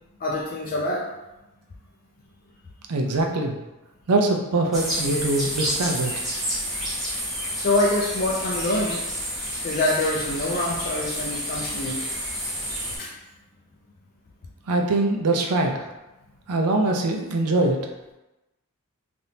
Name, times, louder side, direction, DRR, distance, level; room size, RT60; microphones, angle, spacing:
voice 1, 0.2-1.1 7.6-9.0 9.6-12.0 13.0-13.1, left 2 dB, 40° left, -3 dB, 0.4 m, -25 dB
voice 2, 2.9-3.6 4.1-6.3 14.7-15.9 16.5-17.8, right 2 dB, 80° right, 3 dB, 0.5 m, -23 dB
sound 1, 4.7-13.0, equal, ahead, 1.2 m, -30 dB
3.4 x 2.5 x 2.7 m, 1.0 s
head